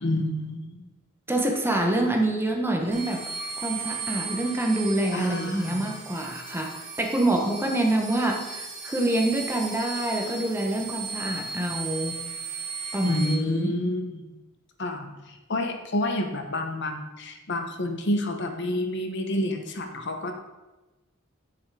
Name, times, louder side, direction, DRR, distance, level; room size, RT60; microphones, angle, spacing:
voice 1, 0.0-0.8 5.1-5.8 13.0-14.2 14.8-15.1 15.5-20.3, left 1 dB, 55° left, 5 dB, 1.0 m, -28 dB
voice 2, 1.3-12.2 12.9-13.8 19.9-20.0, right 1 dB, 10° right, 2 dB, 1.0 m, -26 dB
sound 1, 2.9-13.3, right 5 dB, 35° right, 1.6 m, -36 dB
8.0 x 6.9 x 4.8 m, 1.1 s
head